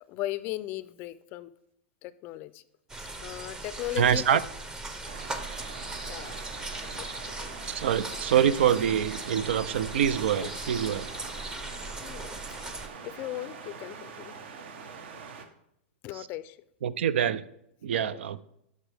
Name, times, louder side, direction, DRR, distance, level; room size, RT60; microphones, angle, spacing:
voice 1, 0.1-1.5 2.0-2.6 3.2-4.4 6.1-6.3 6.9-7.1 7.4-7.5 10.4-10.5 12.0-12.3 13.0-14.4 16.0-16.6 18.1-18.2, left 15 dB, 35° left, 16 dB, 0.4 m, -37 dB
sound 1, 2.9-12.9, right 2 dB, 10° right, 0.6 m, -39 dB
voice 2, 4.0-4.4 7.6-11.1 16.2-16.3 16.8-17.4 17.8-18.4, right 9 dB, 90° right, 18 dB, 0.5 m, -25 dB
sound 2, 5.0-15.5, right 5 dB, 70° right, 1.2 m, -44 dB
11.0 x 6.6 x 3.4 m, 0.78 s
supercardioid pair, 155°, 6 cm